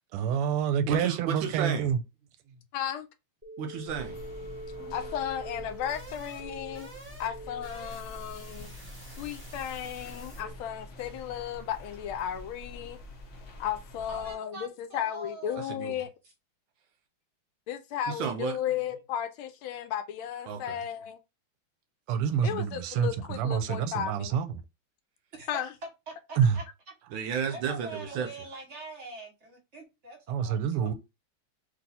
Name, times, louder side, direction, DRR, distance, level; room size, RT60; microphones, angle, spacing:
voice 1, 0.1-2.0 22.1-24.6 26.4-26.6 30.3-30.9, right 7 dB, 90° right, 1.5 m, -27 dB
voice 2, 0.9-1.9 3.6-4.2 15.6-15.9 18.1-18.6 20.5-20.8 27.1-28.3, right 7 dB, 75° right, 1.2 m, -32 dB
voice 3, 2.7-3.1 4.9-6.9 7.2-8.7 9.2-13.0 13.6-16.1 17.7-21.2 22.4-24.4 25.5-25.7, left 10 dB, 75° left, 1.3 m, -34 dB
sound 1, 3.4-10.5, right 1 dB, 10° right, 0.6 m, -45 dB
sound 2, 3.9-14.3, left 1 dB, 60° left, 0.7 m, -46 dB
voice 4, 14.1-15.8 18.7-18.8 25.4-25.5 26.1-26.6 27.5-30.9, right 2 dB, 45° right, 1.0 m, -44 dB
3.2 x 3.0 x 4.1 m
omnidirectional pair, 2.4 m